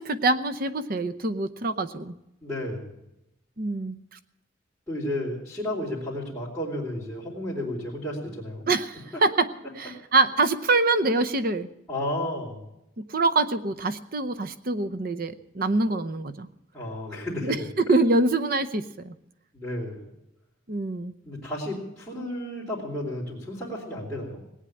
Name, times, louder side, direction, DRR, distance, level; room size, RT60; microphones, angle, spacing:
voice 1, 0.0-2.1 3.6-4.0 8.7-9.5 9.8-11.7 13.0-16.5 17.4-19.1 20.7-21.1, right 2 dB, 45° right, 12 dB, 0.7 m, -25 dB
voice 2, 2.4-2.9 4.9-8.6 11.9-12.6 16.7-17.7 19.5-20.1 21.2-24.4, left 1 dB, 5° left, -10 dB, 3.7 m, -32 dB
18.5 x 9.1 x 8.4 m, 0.86 s
head